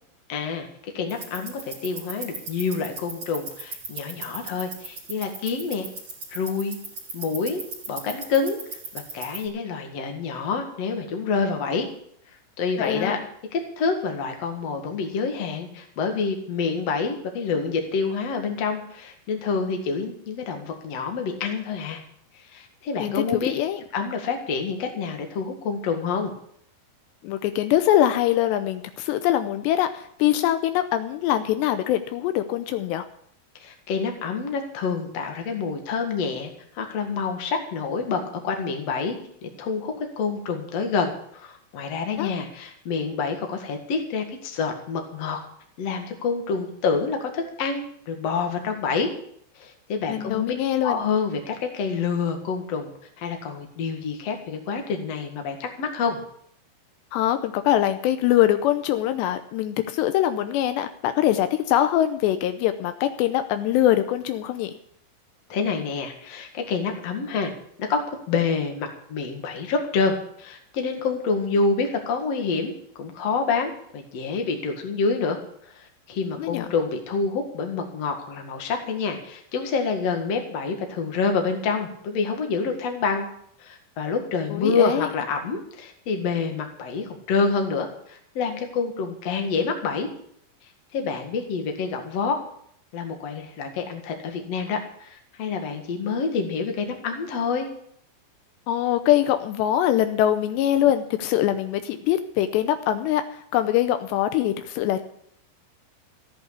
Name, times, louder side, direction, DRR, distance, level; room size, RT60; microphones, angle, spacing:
voice 1, 0.3-5.9 6.3-6.8 7.1-7.6 7.9-11.9 12.6-13.2 13.5-22.0 22.5-23.5 23.9-26.3 33.6-39.2 39.4-45.4 45.8-49.1 49.6-50.5 50.8-52.9 53.2-56.2 65.5-67.5 67.8-83.3 83.6-90.1 90.9-92.4 92.9-97.7, left 5 dB, 50° left, 4 dB, 2.3 m, -27 dB
sound 1, 1.1-9.5, right 3 dB, 30° right, 3.7 m, -38 dB
voice 2, 12.8-13.2 23.0-23.8 27.2-33.1 42.2-42.3 50.1-51.0 57.1-64.8 76.4-76.7 84.5-85.1 98.7-105.0, left 12 dB, 80° left, 10 dB, 2.8 m, -23 dB
14.5 x 8.2 x 8.2 m, 0.67 s
omnidirectional pair, 5.0 m